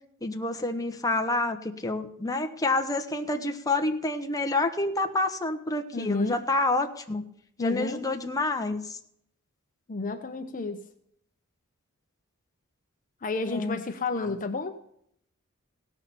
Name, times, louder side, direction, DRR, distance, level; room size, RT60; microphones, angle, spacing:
voice 1, 0.2-7.2 7.6-9.0 13.5-13.8 14.2-14.4, left 2 dB, 15° left, 5 dB, 1.1 m, -28 dB
voice 2, 5.9-6.4 7.6-8.0 9.9-10.9 13.2-14.8, left 3 dB, 40° left, 6 dB, 0.9 m, -31 dB
17.0 x 6.5 x 7.0 m, 0.72 s
head